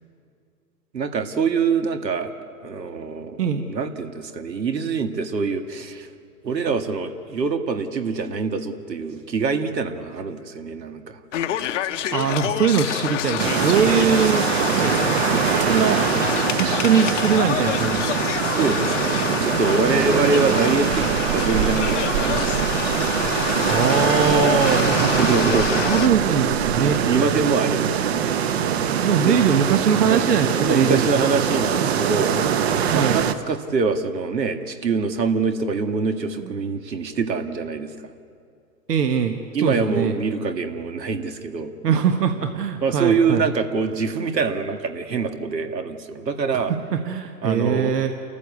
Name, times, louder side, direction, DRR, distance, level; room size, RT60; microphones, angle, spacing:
voice 1, 0.9-2.3 2.6-3.4 3.7-6.1 6.4-11.2 14.8-15.1 18.4-22.7 25.2-26.0 27.0-28.2 29.2-29.4 30.1-32.7 32.9-37.9 39.5-41.7 42.8-46.7 47.4-47.9, right 4 dB, 90° right, 7 dB, 2.0 m, -24 dB
sound 1, 11.3-26.1, left 11 dB, 50° left, 0.9 m, -27 dB
voice 2, 12.1-15.0 15.3-16.0 16.6-18.1 23.7-25.1 25.8-27.0 29.0-31.1 32.8-33.2 36.4-36.5 38.9-40.2 41.8-43.5 46.5-46.6 46.9-48.1, right 7 dB, 75° right, 6 dB, 1.6 m, -21 dB
sound 2, 13.4-33.3, right 8 dB, 40° right, 1.0 m, -23 dB
sound 3, 13.8-17.8, left 9 dB, ahead, 0.5 m, -39 dB
29.5 x 14.5 x 8.3 m, 2.4 s
hypercardioid pair, 150°, 49 cm